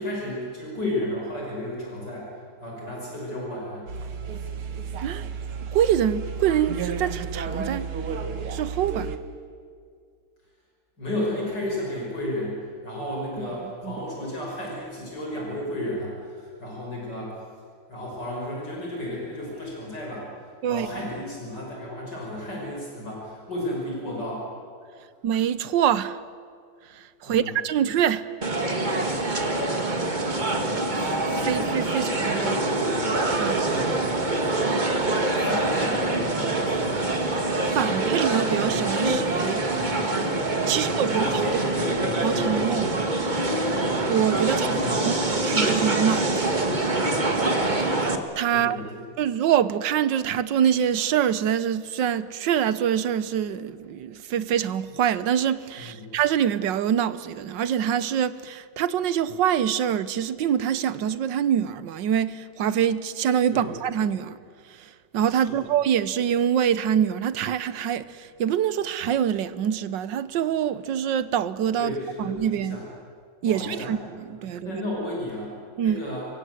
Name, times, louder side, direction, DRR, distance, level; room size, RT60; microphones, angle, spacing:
voice 1, 0.0-2.3 2.6-3.9 11.0-17.3 17.9-20.3 20.7-24.4 27.2-27.6 29.6-30.0 32.2-33.2 33.5-34.0 34.3-34.9 35.3-37.2 40.7-42.7 44.5-45.3 48.5-49.0 55.8-56.1 63.5-63.7 65.4-65.6 71.7-72.8 73.4-73.9 74.5-75.6 75.8-76.3, left 1 dB, 55° left, 6.5 m, -33 dB
sound 1, 3.9-9.2, right 6 dB, 85° right, 2.4 m, -32 dB
voice 2, 5.7-7.9 8.5-9.1 13.4-13.5 13.8-13.9 20.6-20.9 25.2-26.2 27.0-28.3 31.4-32.4 33.4-33.6 37.7-39.6 40.0-40.2 40.7-41.3 42.2-43.0 44.1-44.8 45.1-46.6 48.4-48.8 49.2-64.4 64.8-72.8 73.4-74.7 75.8-76.0, right 9 dB, 65° right, 1.5 m, -25 dB
sound 2, 28.4-48.2, right 2 dB, 25° right, 1.6 m, -25 dB
27.5 x 23.5 x 8.0 m
omnidirectional pair, 2.3 m